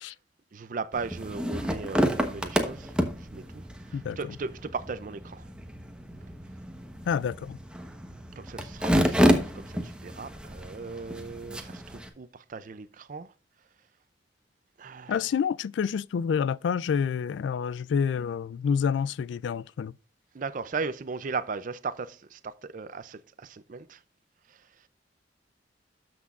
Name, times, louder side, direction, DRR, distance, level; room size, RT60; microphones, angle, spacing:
voice 1, 0.5-2.9 3.2-3.6 3.9-5.5 8.4-13.3 14.8-15.2 20.3-24.0, right 4 dB, 45° right, 0.5 m, -37 dB
sound 1, 0.9-12.1, equal, 5° right, 1.0 m, -29 dB
voice 2, 3.9-4.3 7.1-7.6 15.1-19.9, left 7 dB, 90° left, 0.3 m, -28 dB
13.0 x 6.1 x 2.4 m
head